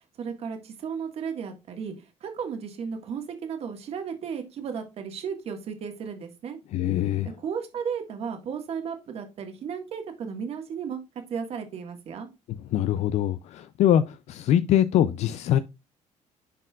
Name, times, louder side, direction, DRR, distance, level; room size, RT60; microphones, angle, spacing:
voice 1, 0.2-1.9 2.2-6.6 7.4-11.0 11.3-12.3, right 6 dB, 50° right, 1.7 m, -34 dB
voice 2, 6.7-7.3 12.7-15.6, left 11 dB, 60° left, 0.4 m, -23 dB
10.0 x 4.3 x 2.4 m
cardioid pair, 140°, 13 cm